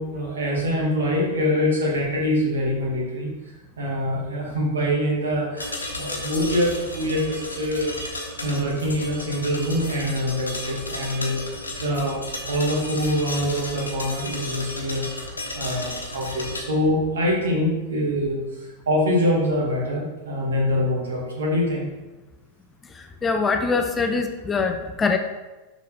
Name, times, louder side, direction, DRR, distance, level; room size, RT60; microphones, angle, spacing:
voice 1, 0.0-3.3 3.8-7.9 8.4-11.4 11.8-15.3 15.5-21.9, equal, 65° right, -2 dB, 2.1 m, -24 dB
sound 1, 5.6-16.6, left 2 dB, 75° left, 1.1 m, -33 dB
voice 2, 23.0-25.2, left 4 dB, 15° left, 6 dB, 0.6 m, -23 dB
6.8 x 6.1 x 3.4 m, 1.1 s
figure-of-eight pair, 90°, 0 cm